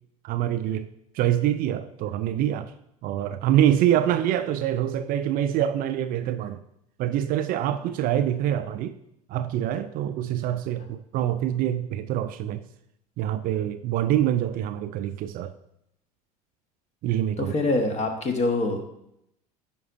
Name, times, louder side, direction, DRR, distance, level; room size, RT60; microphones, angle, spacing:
voice 1, 0.2-0.9 1.1-2.7 3.0-6.6 7.0-8.9 9.3-12.6 13.2-15.5 17.0-17.5, right 11 dB, 45° right, 0.4 m, -25 dB
voice 2, 17.4-18.8, left 2 dB, 35° left, 1.3 m, -25 dB
9.6 x 5.2 x 2.6 m
hypercardioid pair, 80°, 20 cm